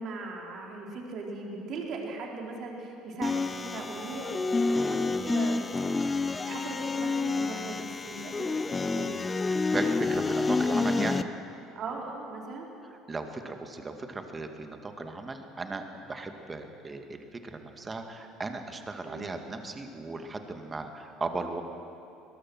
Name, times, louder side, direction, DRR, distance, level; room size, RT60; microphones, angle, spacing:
voice 1, 0.0-5.6 6.4-9.3 11.7-12.7 19.0-19.2, right 3 dB, 50° right, -1 dB, 4.2 m, -39 dB
sound 1, 3.2-11.2, left 3 dB, 20° left, 0.8 m, -29 dB
voice 2, 9.5-11.3 12.9-21.6, right 3 dB, 25° right, 5 dB, 2.3 m, -37 dB
21.5 x 21.5 x 6.3 m, 2.7 s
figure-of-eight pair, 60°, 0 cm